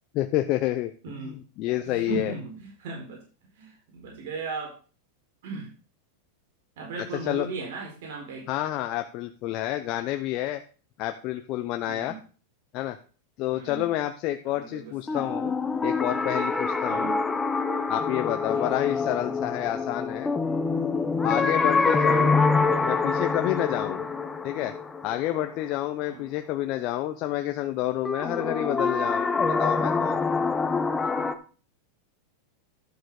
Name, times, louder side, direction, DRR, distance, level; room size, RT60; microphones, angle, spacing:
voice 1, 0.1-0.9 1.2-2.3 7.3-7.5 8.5-10.6 11.0-12.1 12.7-13.0 13.4-15.5 15.8-17.1 17.9-20.3 21.2-22.4 22.8-24.0 24.4-24.7 25.0-29.3 29.6-30.2, left 14 dB, 45° left, 7 dB, 0.7 m, -29 dB
voice 2, 1.0-1.4 1.8-3.2 3.5-4.8 5.4-5.7 6.8-8.5 11.9-12.2 13.5-13.9 14.4-15.3 16.9-17.2 18.4-19.0 21.6-21.8 24.0-24.2 26.1-26.3, right 4 dB, 70° right, -1 dB, 4.6 m, -37 dB
sound 1, 15.1-25.9 28.0-31.3, left 4 dB, 10° left, 0.9 m, -26 dB
11.5 x 6.4 x 4.9 m, 0.37 s
supercardioid pair, 135°, 0 cm